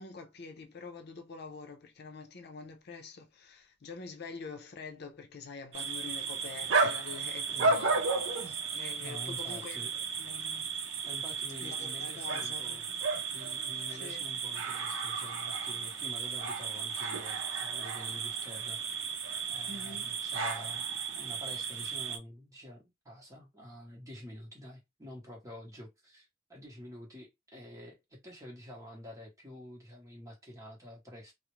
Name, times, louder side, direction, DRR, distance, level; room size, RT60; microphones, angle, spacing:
voice 1, 0.0-10.7 11.6-12.8 14.0-14.3 19.7-20.1, left 4 dB, 55° left, 0.5 m, -46 dB
sound 1, 5.7-22.2, right 4 dB, 80° right, 0.5 m, -34 dB
voice 2, 9.0-9.9 11.0-12.8 13.3-18.8 19.5-31.3, left 1 dB, 15° right, 0.9 m, -48 dB
2.4 x 2.0 x 3.0 m
head